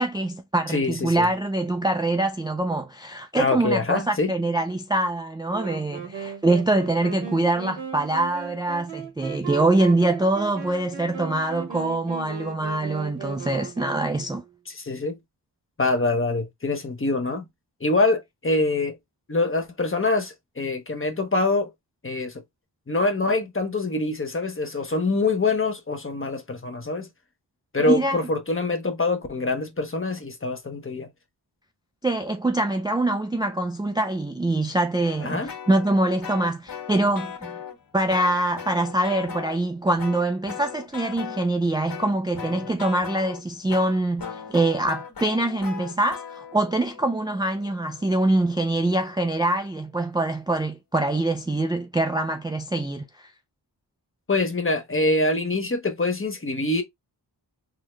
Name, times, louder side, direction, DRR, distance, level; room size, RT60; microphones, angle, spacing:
voice 1, 0.0-14.4 27.8-28.2 32.0-37.6 37.9-53.3, right 2 dB, 10° right, 0.3 m, -24 dB
voice 2, 0.7-1.3 3.3-4.3 14.8-15.2 15.8-17.5 17.8-19.0 19.3-21.7 22.0-22.4 22.9-27.1 27.7-31.1 35.2-35.5 54.3-56.8, left 2 dB, 30° left, 0.9 m, -25 dB
Wind instrument woodwind instrument, 5.5-14.5, right 6 dB, 90° right, 1.2 m, -37 dB
sound 1, 35.0-37.8 38.1-39.6 40.0-41.5 41.9-48.9, left 7 dB, 55° left, 1.6 m, -39 dB
3.7 x 2.2 x 3.0 m
wide cardioid pair, 65°, 42 cm